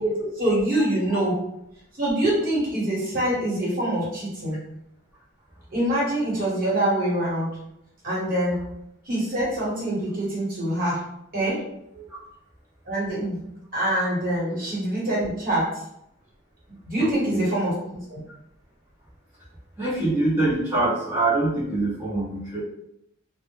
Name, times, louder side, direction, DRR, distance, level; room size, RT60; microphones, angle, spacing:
voice 1, 0.0-1.4 2.0-4.6 5.7-7.5 8.0-8.6 9.0-11.0 11.3-11.6 12.9-13.4 13.7-15.7 16.8-18.2, right 1 dB, 45° right, -6 dB, 1.1 m, -25 dB
voice 2, 17.0-17.5 19.8-22.6, right 2 dB, 10° right, -10 dB, 0.6 m, -25 dB
2.1 x 2.0 x 2.9 m, 0.79 s
head